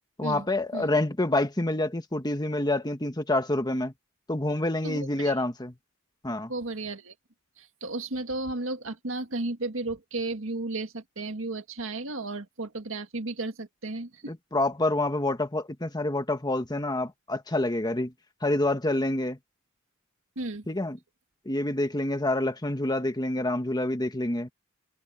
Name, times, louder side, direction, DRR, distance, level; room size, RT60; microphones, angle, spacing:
voice 1, 0.2-3.9 4.3-5.7 6.2-6.5 14.3-18.1 18.4-19.4 20.7-21.0 21.4-24.5, left 2 dB, 20° left, 1.5 m, -27 dB
voice 2, 4.8-5.3 6.5-7.1 7.6-14.3 20.4-20.7, right 2 dB, 70° right, 2.0 m, -34 dB
head